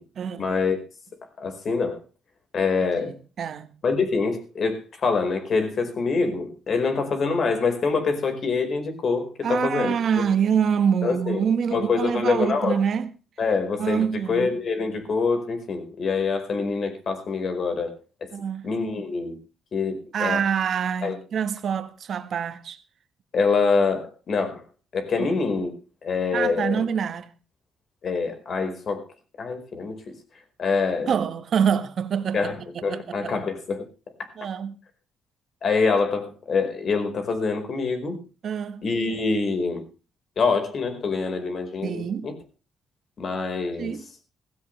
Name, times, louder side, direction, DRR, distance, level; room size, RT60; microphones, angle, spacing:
voice 1, 0.4-0.8 1.4-2.0 2.5-3.2 3.8-9.9 11.0-11.4 11.7-12.8 13.4-17.9 18.2-18.3 18.6-19.4 19.7-20.4 21.0-21.2 23.3-24.6 24.9-25.7 26.0-26.9 28.0-29.0 29.4-30.0 30.6-31.1 32.3-33.9 35.6-38.2 38.8-39.8 40.4-42.3 43.2-43.9, left 4 dB, 50° left, 4.7 m, -25 dB
voice 2, 3.0-3.7 9.4-13.1 13.8-14.5 18.3-18.7 20.1-22.8 25.2-25.3 26.3-27.3 31.1-33.3 34.4-34.8 38.4-38.8 41.8-42.3 43.8-44.0, right 7 dB, 60° right, 1.5 m, -26 dB
16.0 x 16.0 x 3.3 m
cardioid pair, 90°, 0 cm